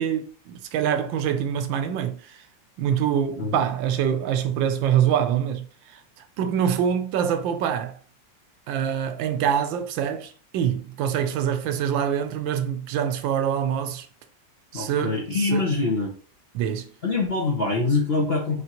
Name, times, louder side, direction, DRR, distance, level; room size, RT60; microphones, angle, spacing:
voice 1, 0.0-2.4 2.8-5.6 5.9-6.0 6.4-8.0 8.7-14.1 14.7-15.2 15.5-15.7 16.5-16.9, right 9 dB, 85° right, 1.4 m, -25 dB
voice 2, 14.7-16.1 17.0-18.6, left 3 dB, 50° left, 0.7 m, -24 dB
4.2 x 3.4 x 2.9 m
omnidirectional pair, 2.0 m